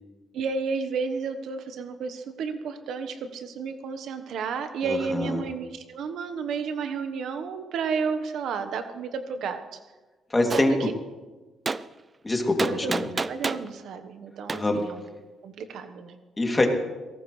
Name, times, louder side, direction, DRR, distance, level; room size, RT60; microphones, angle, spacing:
voice 1, 0.3-9.8 10.5-10.9 12.6-12.9 13.3-15.0 15.4-16.2, right 5 dB, 75° right, 8 dB, 1.3 m, -32 dB
voice 2, 4.8-5.4 10.3-10.8 12.2-13.1 14.5-14.8 16.4-16.7, left 2 dB, 20° left, 2 dB, 2.8 m, -24 dB
Gunshot gunfire, 10.5-10.7 11.7-11.8 12.6-13.7 14.5-14.6, right 4 dB, 30° right, 0.5 m, -28 dB
22.0 x 18.0 x 3.3 m, 1.2 s
cardioid pair, 90°, 0 cm